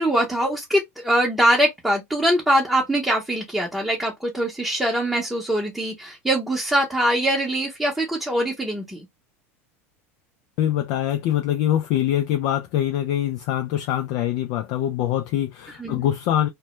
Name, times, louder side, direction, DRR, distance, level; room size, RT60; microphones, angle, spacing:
voice 1, 0.0-9.1 15.8-16.1, right 1 dB, 5° right, 0.7 m, -23 dB
voice 2, 10.6-16.5, left 11 dB, 60° left, 0.4 m, -24 dB
2.1 x 2.1 x 2.9 m
hypercardioid pair, 95°, 8 cm